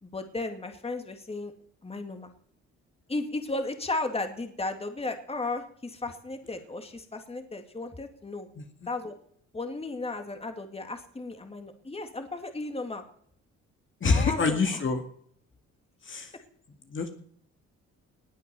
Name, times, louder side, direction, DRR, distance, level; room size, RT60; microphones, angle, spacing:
voice 1, 0.0-1.5 1.8-2.3 3.1-8.5 8.9-9.1 9.5-13.0 14.1-14.8, left 2 dB, 20° left, 6 dB, 2.3 m, -35 dB
voice 2, 14.0-15.0 16.0-16.3 16.9-17.1, left 4 dB, 40° left, 4 dB, 2.2 m, -26 dB
20.0 x 8.4 x 7.0 m, 0.64 s
cardioid pair, 90°, 30 cm